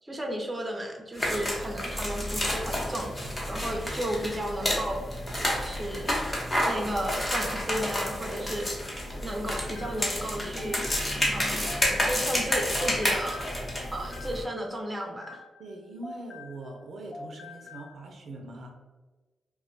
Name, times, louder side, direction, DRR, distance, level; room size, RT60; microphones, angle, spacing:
voice 1, 0.0-6.1 6.7-8.7 9.1-10.8 11.3-11.8 12.0-13.5 13.9-15.4, equal, 20° right, 2 dB, 0.5 m, -34 dB
sound 1, 1.2-14.4, left 1 dB, 25° left, 0.7 m, -30 dB
sound 2, 9.2-12.5 12.8-16.8 17.1-17.9, left 3 dB, 40° left, 0.3 m, -46 dB
voice 2, 15.6-18.7, right 2 dB, 70° right, 2 dB, 0.5 m, -42 dB
2.2 x 2.1 x 3.9 m, 1.2 s
cardioid pair, 85°, 0 cm